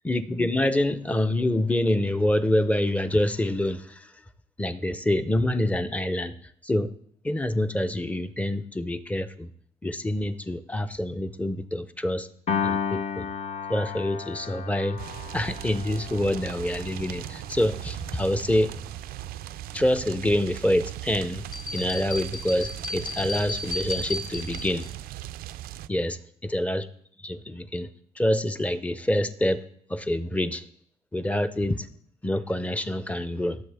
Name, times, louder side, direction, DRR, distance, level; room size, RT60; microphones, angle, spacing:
voice 1, 0.0-4.1 4.6-6.9 7.2-9.5 9.8-12.3 12.6-13.3 13.7-15.0 15.3-18.8 19.7-21.4 21.7-24.9 25.9-26.9 27.2-27.9 28.2-29.6 29.9-30.6 31.1-31.9 32.2-33.6, left 1 dB, 10° left, 13 dB, 0.6 m, -26 dB
Piano, 12.5-18.9, left 6 dB, 40° left, 0.8 m, -34 dB
sound 1, 15.0-25.9, right 14 dB, 65° right, 0.4 m, -38 dB
sound 2, 21.5-24.9, left 2 dB, 55° left, 1.2 m, -34 dB
17.0 x 7.3 x 3.5 m, 0.62 s
cardioid pair, 110°, 17 cm